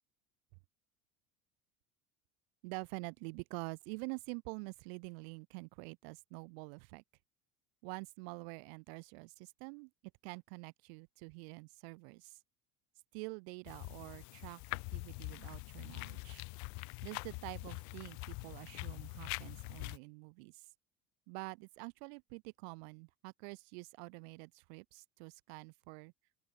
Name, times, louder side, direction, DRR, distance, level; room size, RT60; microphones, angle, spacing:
voice 1, 2.6-7.0 7.8-9.9 10.2-12.4 13.1-16.5 17.0-20.7 21.3-26.1, right 37 dB, 50° right, 0.6 m, -47 dB
sound 1, 13.7-20.0, left 31 dB, 40° left, 0.6 m, -44 dB
open air
figure-of-eight pair, 70°, 43 cm